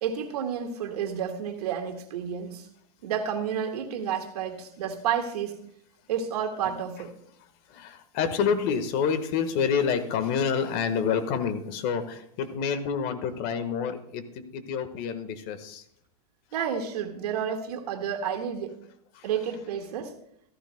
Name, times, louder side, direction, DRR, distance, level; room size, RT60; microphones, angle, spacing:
voice 1, 0.0-2.7 3.0-5.6 6.1-7.1 16.5-18.7 19.2-20.1, right 8 dB, 75° right, 3 dB, 1.9 m, -30 dB
voice 2, 7.7-15.8, left 6 dB, 50° left, 10 dB, 1.4 m, -28 dB
14.5 x 14.5 x 2.2 m, 0.72 s
hypercardioid pair, 115°, 20 cm